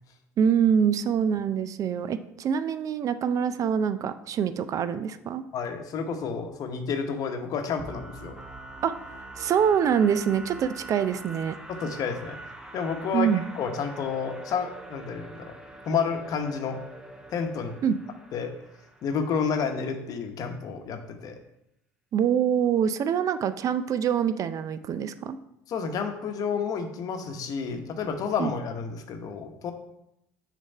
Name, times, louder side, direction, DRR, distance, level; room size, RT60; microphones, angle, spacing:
voice 1, 0.4-5.4 8.8-8.9 9.4-11.5 13.1-13.4 17.8-18.0 22.1-25.4 28.4-28.5, right 8 dB, 45° right, 12 dB, 0.4 m, -25 dB
voice 2, 5.5-8.3 11.7-12.4 12.7-13.3 13.5-15.5 15.8-16.8 17.3-17.8 18.3-18.5 19.0-21.3 25.7-29.7, left 6 dB, 50° left, 6 dB, 0.9 m, -30 dB
sound 1, 7.8-19.6, right 2 dB, 10° right, 0.9 m, -44 dB
6.4 x 3.4 x 5.4 m, 0.82 s
hypercardioid pair, 65°, 8 cm